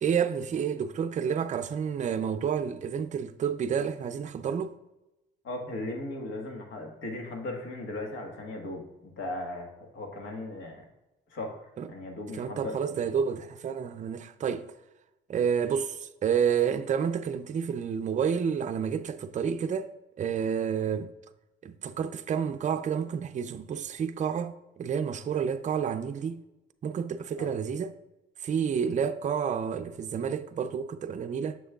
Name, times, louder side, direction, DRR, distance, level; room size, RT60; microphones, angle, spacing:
voice 1, 0.0-4.7 11.8-11.9 12.4-14.7 15.3-19.9 20.2-21.1 21.6-26.4 26.8-27.9 28.4-31.6, right 7 dB, 40° right, 0.4 m, -29 dB
voice 2, 5.4-10.8 11.3-11.6 11.9-13.0 27.4-27.5, left 2 dB, 75° left, 1.5 m, -37 dB
7.2 x 6.3 x 2.3 m
cardioid pair, 90°, 20 cm